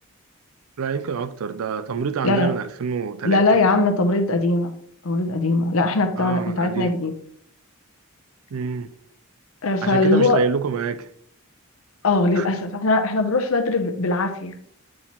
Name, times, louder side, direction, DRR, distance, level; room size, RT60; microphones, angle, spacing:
voice 1, 0.8-3.4 6.2-6.9 8.5-8.9 9.8-11.1 12.4-12.5, right 6 dB, 70° right, 0.4 m, -27 dB
voice 2, 2.2-2.5 3.2-4.7 5.0-7.1 9.6-10.4 12.0-14.5, left 2 dB, 65° left, 0.7 m, -20 dB
7.5 x 4.2 x 3.0 m
head